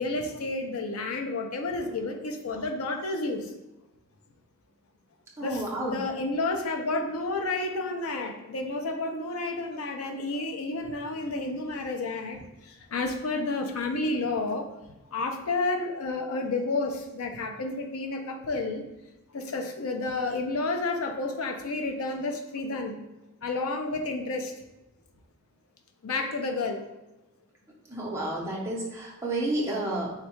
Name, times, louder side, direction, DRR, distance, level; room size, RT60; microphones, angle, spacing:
voice 1, 0.0-3.5 5.4-14.7 15.1-18.8 19.3-23.0 23.4-24.5 26.0-26.8, left 3 dB, 80° left, 4 dB, 0.5 m, -31 dB
voice 2, 5.4-6.0 27.9-30.1, right 1 dB, 15° right, -4 dB, 0.7 m, -30 dB
3.5 x 2.2 x 4.3 m, 0.98 s
head